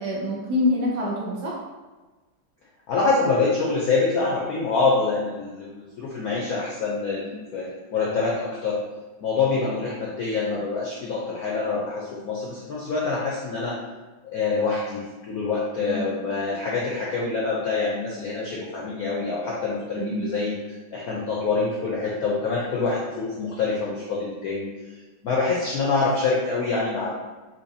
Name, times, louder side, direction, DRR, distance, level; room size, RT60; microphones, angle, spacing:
voice 1, 0.0-1.5 7.3-7.4 15.8-16.3 19.9-20.3, left 1 dB, 65° right, -4 dB, 1.1 m, -26 dB
voice 2, 2.9-8.8 9.2-13.8 14.2-20.5 20.9-24.7 25.2-27.2, left 4 dB, 75° left, -4 dB, 0.8 m, -25 dB
4.5 x 2.6 x 2.7 m, 1.2 s
omnidirectional pair, 2.3 m